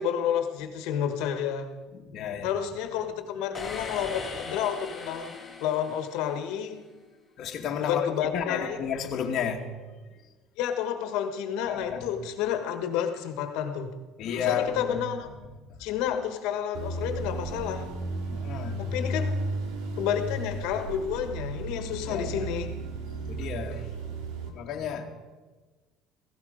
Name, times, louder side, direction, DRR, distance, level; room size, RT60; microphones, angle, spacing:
voice 1, 0.0-1.7 2.4-6.8 7.8-8.8 10.6-13.9 14.4-15.3 15.8-17.9 18.8-19.3 20.0-22.7, left 9 dB, 70° left, 7 dB, 1.5 m, -30 dB
voice 2, 1.9-2.5 7.4-9.7 11.7-12.1 14.2-15.0 15.4-15.8 18.3-18.8 22.0-22.5 23.3-23.9 24.5-25.2, left 7 dB, 45° left, 1 dB, 1.5 m, -32 dB
sound 1, 3.5-6.7, left 4 dB, 10° left, 2.1 m, -40 dB
sound 2, 16.7-24.5, right 1 dB, 90° right, 2.7 m, -34 dB
16.5 x 16.0 x 5.1 m, 1.3 s
cardioid pair, 165°, 0 cm